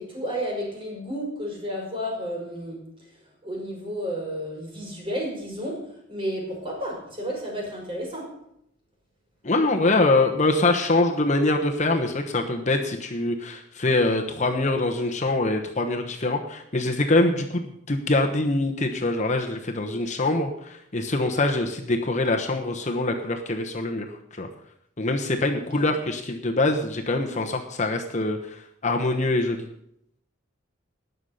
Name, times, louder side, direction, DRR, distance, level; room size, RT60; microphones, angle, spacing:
voice 1, 0.0-8.4 25.7-25.9, equal, 30° right, -1 dB, 5.0 m, -32 dB
voice 2, 9.4-24.5 25.0-29.6, left 2 dB, 40° left, 3 dB, 1.1 m, -24 dB
19.5 x 6.6 x 5.6 m, 0.74 s
head